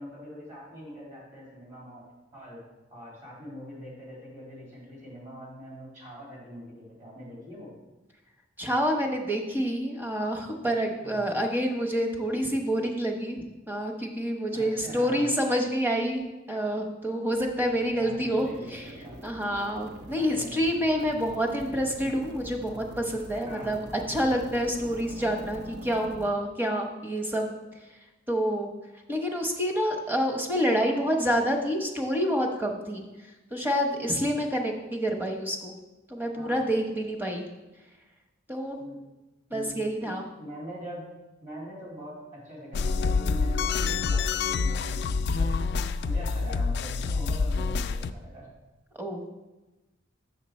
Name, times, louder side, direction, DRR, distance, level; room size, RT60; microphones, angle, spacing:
voice 1, 0.0-2.0 2.3-2.6 2.9-7.7 11.0-11.3 14.5-15.3 18.0-19.1 20.2-20.6 21.1-21.2 23.4-23.7 36.3-36.6 38.8-39.0 39.5-40.1 40.4-41.0 41.4-45.5 46.0-48.5, equal, 40° right, -5 dB, 2.4 m, -43 dB
voice 2, 8.6-16.2 16.5-18.9 19.2-23.8 24.1-27.5 28.3-28.7 29.1-33.0 33.5-35.8 36.1-37.5 38.5-38.8 39.5-40.2 49.0-49.3, equal, 10° right, 2 dB, 0.9 m, -28 dB
sound 1, 17.3-26.3, right 1 dB, 60° right, 0.7 m, -45 dB
sound 2, 42.7-48.1, left 4 dB, 60° left, 0.3 m, -27 dB
6.7 x 6.4 x 4.3 m, 1.1 s
head